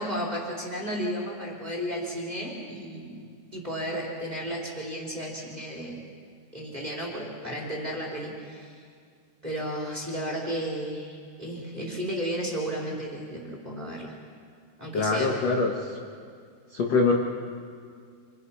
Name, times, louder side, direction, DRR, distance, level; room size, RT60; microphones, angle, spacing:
voice 1, 0.0-3.3 3.5-6.0 6.5-8.8 9.4-14.1 14.8-15.3, equal, 10° right, -2 dB, 3.7 m, -33 dB
voice 2, 14.9-16.0 16.7-17.1, left 4 dB, 50° left, 0 dB, 2.1 m, -24 dB
28.5 x 27.0 x 5.7 m, 2.1 s
omnidirectional pair, 5.4 m